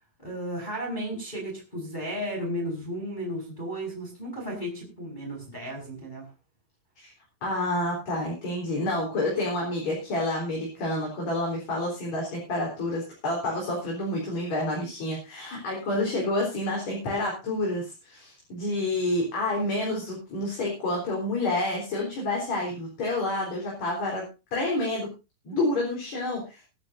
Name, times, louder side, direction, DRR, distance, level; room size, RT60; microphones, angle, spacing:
voice 1, 0.2-6.3 25.5-25.6, equal, 10° left, -1 dB, 5.0 m, -34 dB
voice 2, 7.4-24.2 24.5-25.1 25.4-26.6, left 2 dB, 45° left, -3 dB, 5.0 m, -29 dB
23.0 x 11.0 x 2.6 m, 0.29 s
omnidirectional pair, 4.7 m